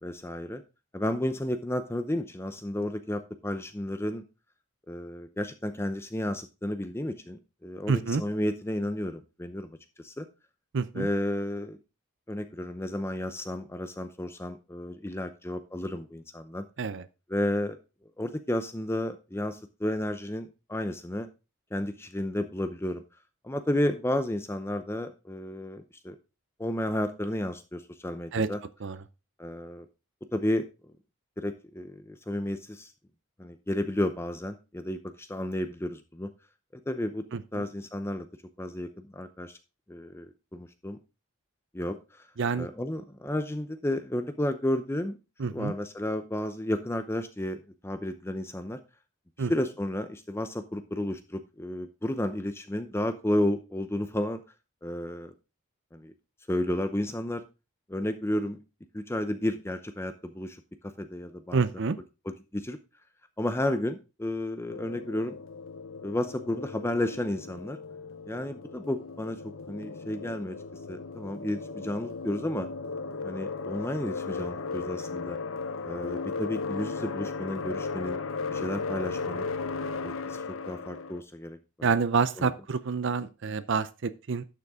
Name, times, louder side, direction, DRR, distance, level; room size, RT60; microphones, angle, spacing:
voice 1, 0.0-0.6 0.9-4.2 4.9-9.8 10.0-10.3 10.9-11.8 12.3-16.6 17.3-17.8 18.2-21.3 21.7-23.0 23.4-26.2 26.6-28.6 29.4-29.9 30.3-30.6 31.4-32.9 33.4-36.3 36.9-37.2 37.5-38.3 38.6-39.6 39.9-40.3 40.5-41.0 41.7-42.0 42.6-45.2 45.5-48.8 49.4-54.4 54.8-55.3 55.9-56.1 56.5-57.4 57.9-58.6 58.9-60.6 61.0-61.6 62.3-62.8 63.4-65.4 66.0-67.8 68.3-69.4 69.7-70.6 70.9-72.7 73.2-75.4 75.8-78.2 78.5-79.4 80.0-81.9 82.4-82.5, left 1 dB, 10° left, 9 dB, 0.7 m, -32 dB
voice 2, 7.9-8.2 10.7-11.1 16.8-17.0 28.3-28.5 28.8-29.0 37.5-37.6 42.4-42.7 45.4-45.7 49.4-49.5 61.5-62.0 81.8-84.4, right 5 dB, 60° right, 13 dB, 0.6 m, -27 dB
sound 1, 64.7-81.2, left 4 dB, 75° left, 0.7 m, -36 dB
11.5 x 6.8 x 3.6 m, 0.29 s
head